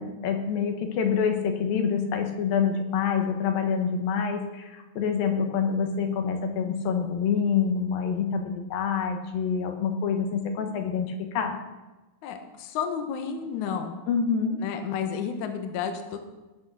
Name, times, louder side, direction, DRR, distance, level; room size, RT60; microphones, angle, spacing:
voice 1, 0.0-11.5 14.1-14.6, left 6 dB, 80° left, 5 dB, 3.0 m, -26 dB
voice 2, 12.2-14.0 14.6-16.3, left 7 dB, 65° left, 6 dB, 2.3 m, -31 dB
18.5 x 6.3 x 6.2 m, 1.1 s
omnidirectional pair, 4.1 m